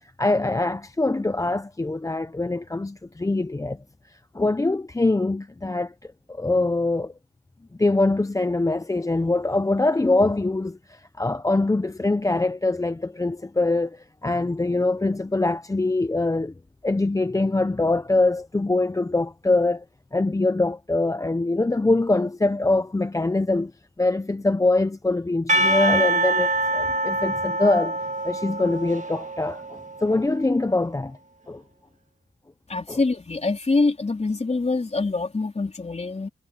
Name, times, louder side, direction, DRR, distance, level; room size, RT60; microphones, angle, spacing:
voice 1, 0.0-7.1 7.8-16.5 16.8-19.8 20.1-23.7 24.0-28.0 28.2-31.2 31.5-31.6 32.9-33.0, left 2 dB, 15° left, 0.6 m, -23 dB
Percussion / Church bell, 25.5-30.3, right 2 dB, 35° right, 1.6 m, -25 dB
voice 2, 32.7-36.3, left 3 dB, 30° left, 3.5 m, -25 dB
wide cardioid pair, 90°, 20 cm